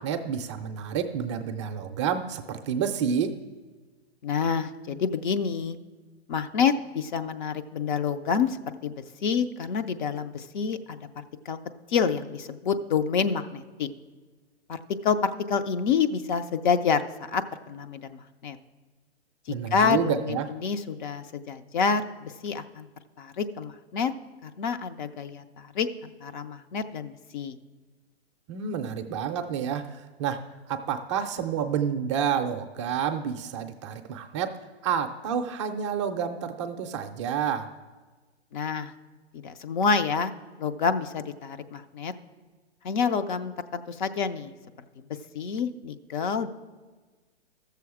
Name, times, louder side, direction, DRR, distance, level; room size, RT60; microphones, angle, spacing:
voice 1, 0.0-3.4 19.5-20.5 28.5-30.4 30.7-34.5 34.8-37.7, right 7 dB, 30° right, 6 dB, 0.5 m, -29 dB
voice 2, 4.2-5.8 6.3-8.6 8.8-11.0 11.5-11.6 11.9-13.9 14.7-18.6 19.5-22.9 23.2-24.1 24.4-27.6 38.5-38.9 39.3-40.3 40.6-42.1 42.8-44.5 45.0-45.1 45.3-46.5, left 6 dB, 45° left, 10 dB, 0.6 m, -28 dB
14.0 x 6.9 x 4.8 m, 1.3 s
hypercardioid pair, 140°, 33 cm